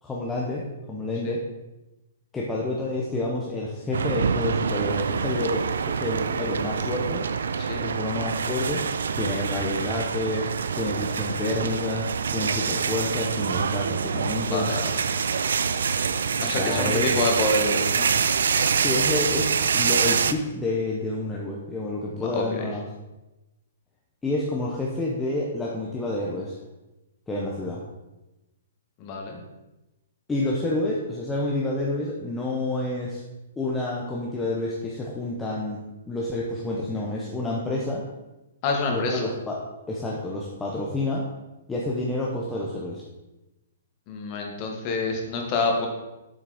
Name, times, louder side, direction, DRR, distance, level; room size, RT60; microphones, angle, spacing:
voice 1, 0.0-1.4 2.3-7.2 7.8-8.8 9.2-10.5 10.7-14.7 16.6-17.1 18.8-22.8 24.2-26.6 27.3-27.8 30.3-33.2 33.6-35.8 36.1-38.0 38.9-39.6 39.9-41.3 41.7-43.0, left 2 dB, 5° left, -4 dB, 0.7 m, -29 dB
sound 1, 3.9-20.3, right 6 dB, 90° right, 0.5 m, -26 dB
voice 2, 7.6-7.9 14.4-14.9 16.4-18.1 22.1-22.7 29.0-29.4 38.6-39.3 44.1-45.9, left 3 dB, 25° left, 1 dB, 1.4 m, -27 dB
7.6 x 6.5 x 4.9 m, 1.0 s
hypercardioid pair, 175°, 0 cm